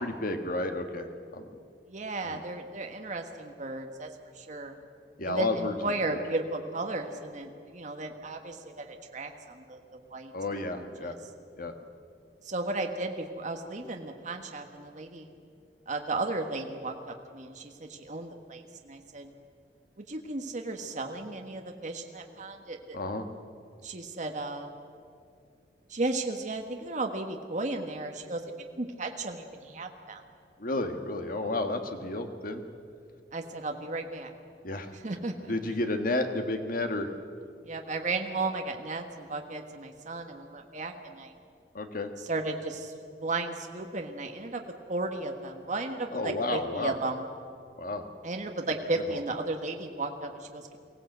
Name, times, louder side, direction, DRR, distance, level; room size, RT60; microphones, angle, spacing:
voice 1, 0.0-1.5 2.2-2.4 5.2-6.2 10.3-11.1 11.6-11.7 22.9-23.2 30.6-32.6 34.6-34.9 35.5-37.1 41.7-42.1 46.1-47.0 47.8-48.0 49.1-49.2, left 2 dB, 55° left, 6 dB, 1.6 m, -32 dB
voice 2, 1.9-4.1 4.3-4.8 5.2-10.3 10.7-11.1 12.4-15.3 15.9-19.3 20.0-23.0 23.8-24.7 25.9-28.4 28.8-30.2 33.3-34.3 35.0-35.5 37.6-41.3 42.3-42.9 43.2-44.6 44.9-47.2 48.2-50.8, right 2 dB, 45° right, 4 dB, 1.4 m, -34 dB
23.0 x 16.5 x 8.0 m, 2.3 s
head